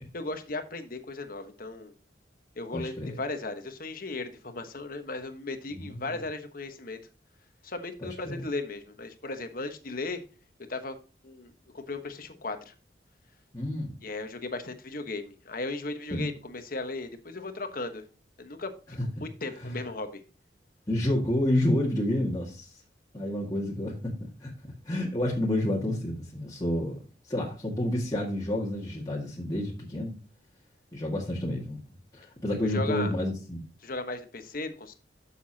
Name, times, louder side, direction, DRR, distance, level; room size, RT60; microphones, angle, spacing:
voice 1, 0.1-1.9 2.6-7.0 7.6-10.2 10.7-11.0 11.2-12.7 14.0-18.0 18.4-20.2 32.7-33.1 33.8-34.9, left 2 dB, 55° left, 1.2 m, -36 dB
voice 2, 2.7-3.2 5.7-6.2 8.0-8.4 13.5-14.0 16.1-16.3 19.2-19.3 19.6-19.8 20.9-22.8 23.1-30.2 30.9-31.8 32.1-33.6, left 1 dB, 20° left, 1.9 m, -30 dB
11.5 x 7.1 x 2.8 m
head